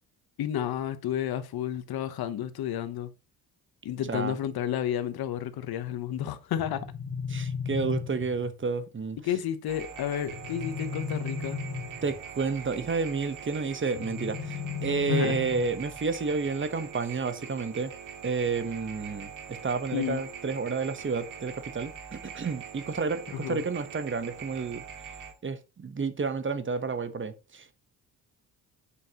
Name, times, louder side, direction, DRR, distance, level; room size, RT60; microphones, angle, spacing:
voice 1, 0.4-3.1 3.8-6.9 9.2-11.6 15.1-15.4 19.9-20.2 23.3-23.6, left 10 dB, 70° left, 0.9 m, -31 dB
sound 1, 6.6-8.6 10.2-12.3 13.9-16.0, left 5 dB, 20° left, 2.2 m, -35 dB
voice 2, 7.3-9.2 12.0-17.9 18.2-24.8 25.4-27.7, right 4 dB, 30° right, 1.0 m, -30 dB
sound 2, 9.7-25.3, right 7 dB, 55° right, 1.7 m, -43 dB
8.0 x 5.6 x 2.9 m
cardioid pair, 85°, 38 cm